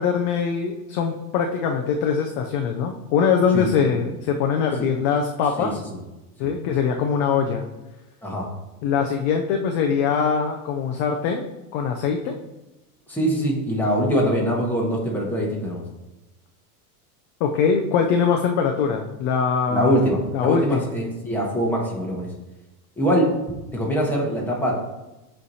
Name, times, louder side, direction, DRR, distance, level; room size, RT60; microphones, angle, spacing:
voice 1, 0.0-5.8 6.4-7.6 8.8-11.5 11.7-12.4 17.4-20.1 20.3-20.8, left 6 dB, 35° left, 3 dB, 0.4 m, -22 dB
voice 2, 5.6-6.0 6.4-6.5 8.2-8.4 13.1-15.8 19.7-22.3 23.0-23.3 23.7-24.8, equal, 5° left, -3 dB, 1.3 m, -23 dB
8.2 x 3.2 x 4.1 m, 1.0 s
supercardioid pair, 150°, 46 cm